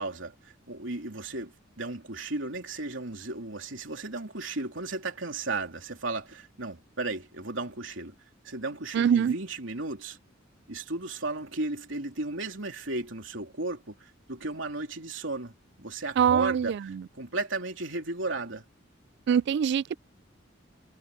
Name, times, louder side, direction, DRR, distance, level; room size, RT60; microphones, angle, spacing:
voice 1, 0.0-8.1 8.4-10.2 10.7-18.6, right 2 dB, 75° right, 3.4 m, -35 dB
voice 2, 8.9-9.3 16.2-16.6 19.3-19.9, right 8 dB, 60° right, 0.3 m, -23 dB
head